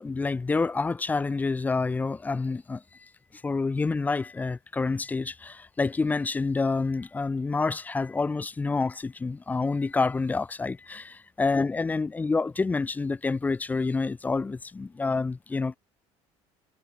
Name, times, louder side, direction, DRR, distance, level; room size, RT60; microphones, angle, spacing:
voice 1, 0.0-2.8 3.4-15.8, left 4 dB, 15° left, 0.6 m, -28 dB
cardioid pair, 135°, 12 cm